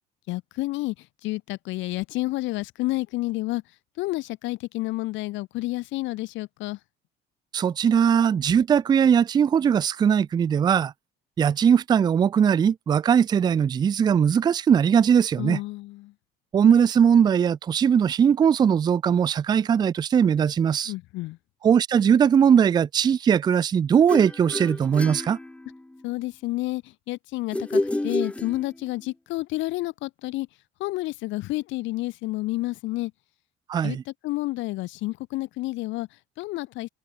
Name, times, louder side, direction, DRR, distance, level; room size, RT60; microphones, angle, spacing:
voice 1, 0.3-3.6 4.0-6.8 15.4-16.1 20.9-21.4 26.0-30.5 30.8-33.1 33.8-36.9, left 19 dB, 65° left, 1.2 m, -30 dB
voice 2, 7.5-10.9 11.4-15.6 16.5-20.9 21.6-25.4 33.7-34.0, right 7 dB, 20° right, 0.4 m, -20 dB
sound 1, 24.1-26.0 27.5-29.1, left 1 dB, 5° left, 2.2 m, -29 dB
cardioid pair, 160°, 21 cm